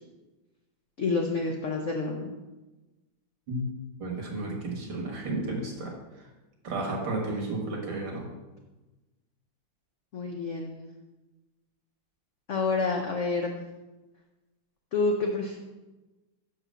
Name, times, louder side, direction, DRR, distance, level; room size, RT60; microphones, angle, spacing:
voice 1, 1.0-2.3 10.1-10.8 12.5-13.6 14.9-15.6, left 3 dB, 60° left, 1 dB, 0.8 m, -28 dB
voice 2, 4.0-5.9 6.6-8.3, right 2 dB, 75° right, 0 dB, 2.3 m, -32 dB
6.0 x 4.9 x 6.7 m, 1.1 s
omnidirectional pair, 2.1 m